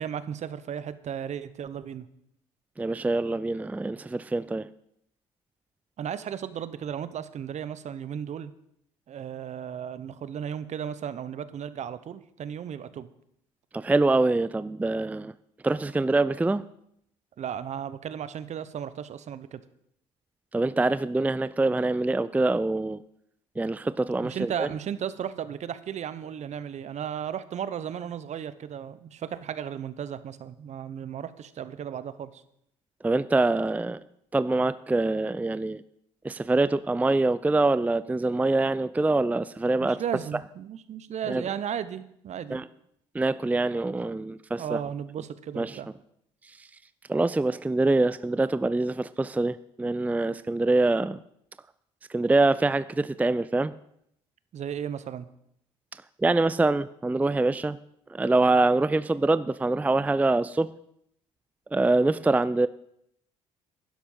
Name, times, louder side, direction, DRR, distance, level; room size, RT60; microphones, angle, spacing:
voice 1, 0.0-2.1 6.0-8.5 9.1-13.1 17.4-19.6 24.2-32.4 39.8-42.6 44.6-45.9 54.5-55.3, right 8 dB, 50° right, 14 dB, 1.0 m, -35 dB
voice 2, 2.8-4.7 13.7-15.3 15.6-16.6 20.5-23.0 23.6-24.7 33.0-34.0 34.3-35.8 36.2-40.0 41.3-41.4 42.5-42.6 43.1-44.8 45.6-45.8 47.1-51.2 52.1-53.7 56.2-57.8 58.1-60.7 61.7-62.7, right 2 dB, 10° right, 15 dB, 0.4 m, -24 dB
11.5 x 10.5 x 5.6 m, 0.73 s
supercardioid pair, 70°, 15 cm